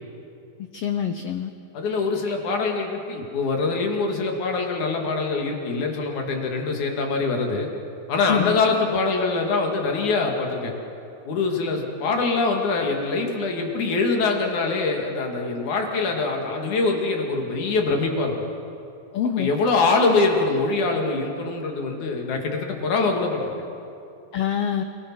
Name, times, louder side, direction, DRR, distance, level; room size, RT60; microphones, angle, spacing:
voice 1, 0.7-1.5 8.3-8.6 19.1-19.5 24.3-24.8, left 9 dB, 85° left, 7 dB, 1.3 m, -25 dB
voice 2, 1.7-7.7 8.1-10.7 11.3-18.3 19.4-23.5, left 3 dB, 65° left, 2 dB, 3.6 m, -24 dB
29.0 x 18.5 x 6.2 m, 2.6 s
omnidirectional pair, 3.8 m